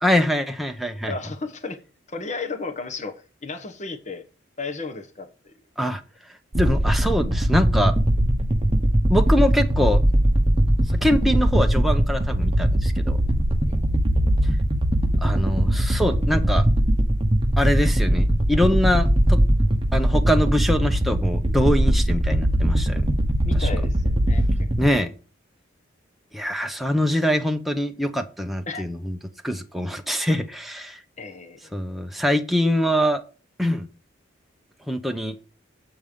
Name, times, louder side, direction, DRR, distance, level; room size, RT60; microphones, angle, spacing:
voice 1, 0.0-1.1 5.8-6.0 6.5-7.9 9.1-10.0 10.9-13.2 15.2-16.6 17.6-19.4 19.9-23.0 23.5-23.7 24.8-25.1 26.3-29.2 29.4-31.0 31.7-33.2 33.6-33.9 34.9-35.3, equal, ahead, 0.7 m, -23 dB
voice 2, 1.0-1.8 2.1-4.2 4.6-5.5 13.6-13.8 23.4-24.4 28.7-28.8 31.2-31.7, left 4 dB, 35° left, 1.2 m, -34 dB
sound 1, 6.5-24.9, right 1 dB, 25° right, 1.0 m, -20 dB
7.7 x 5.5 x 6.7 m
head